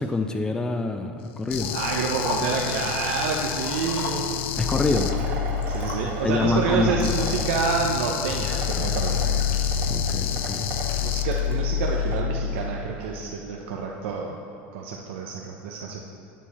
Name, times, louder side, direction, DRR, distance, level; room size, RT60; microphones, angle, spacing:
voice 1, 0.0-1.8 4.6-5.2 6.2-7.1 9.9-10.7, left 3 dB, 10° left, 6 dB, 0.4 m, -26 dB
sound 1, 1.5-5.1 7.0-11.2, left 10 dB, 80° left, 0.5 m, -31 dB
Liquid, 1.6-2.6 3.1-4.6 5.1-6.3 7.0-7.8 8.4-10.0 10.8-11.5, left 3 dB, 65° left, 1.5 m, -38 dB
voice 2, 1.7-4.3 5.7-9.2 11.0-14.4 14.7-16.0, right 5 dB, 80° right, 0 dB, 0.7 m, -28 dB
sound 2, 4.5-13.2, left 6 dB, 50° right, 1.7 m, -28 dB
8.4 x 7.3 x 4.2 m, 2.9 s
supercardioid pair, 155°, 6 cm